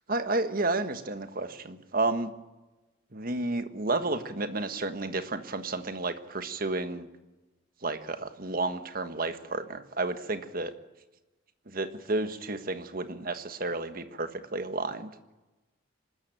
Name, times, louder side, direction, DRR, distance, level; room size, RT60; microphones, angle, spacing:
voice 1, 0.1-2.3 3.1-7.1 7.8-10.7 11.7-15.1, right 2 dB, 50° right, 9 dB, 1.4 m, -31 dB
25.0 x 13.5 x 9.0 m, 1.1 s
head